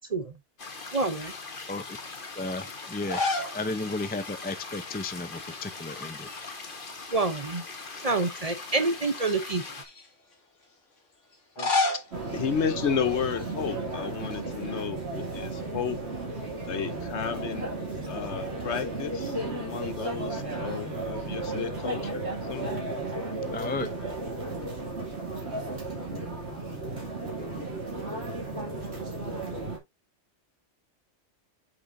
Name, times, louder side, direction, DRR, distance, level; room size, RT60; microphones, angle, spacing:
sound 1, 0.6-9.8, left 3 dB, 45° left, 1.5 m, -41 dB
voice 1, 0.9-1.3 7.1-7.6 8.0-9.6 11.6-11.7, right 3 dB, 35° right, 0.8 m, -27 dB
voice 2, 2.4-3.2 3.5-6.3 23.5-23.9, left 2 dB, 15° left, 0.4 m, -33 dB
sound 2, 2.9-3.6 3.9-4.0 5.4-5.9 6.2-7.3 7.9-8.0 8.9-10.1 11.3-13.5, left 3 dB, 90° left, 2.3 m, -32 dB
sound 3, 12.1-29.8, right 2 dB, 60° right, 3.0 m, -34 dB
voice 3, 12.3-16.0 16.7-17.7 18.1-22.8, left 7 dB, 70° left, 1.2 m, -32 dB
8.0 x 6.1 x 2.6 m
omnidirectional pair, 1.2 m